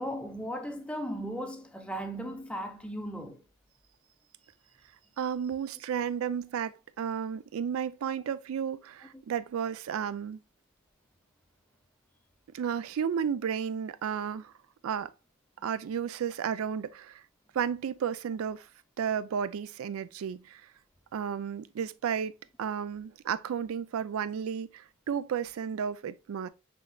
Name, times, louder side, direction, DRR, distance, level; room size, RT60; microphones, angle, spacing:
voice 1, 0.0-3.4, equal, 5° left, 0.5 m, -36 dB
voice 2, 5.2-10.4 12.5-14.5 14.8-15.1 15.6-17.2 17.5-18.7 19.0-20.7 21.1-22.3 22.6-26.5, right 7 dB, 85° right, 0.3 m, -33 dB
6.1 x 3.2 x 2.2 m
head